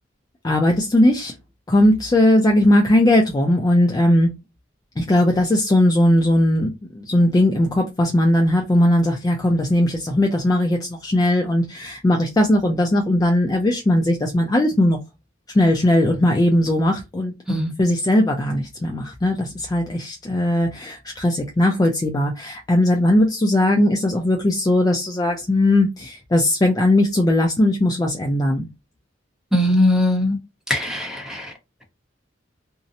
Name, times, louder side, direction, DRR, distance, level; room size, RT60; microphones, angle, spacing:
voice 1, 0.4-1.3 1.7-4.3 5.0-15.0 15.5-17.3 17.8-28.7, left 1 dB, 20° left, 0.4 m, -18 dB
voice 2, 29.5-30.4 30.7-31.5, left 1 dB, 5° right, 0.8 m, -20 dB
2.6 x 2.0 x 2.5 m
head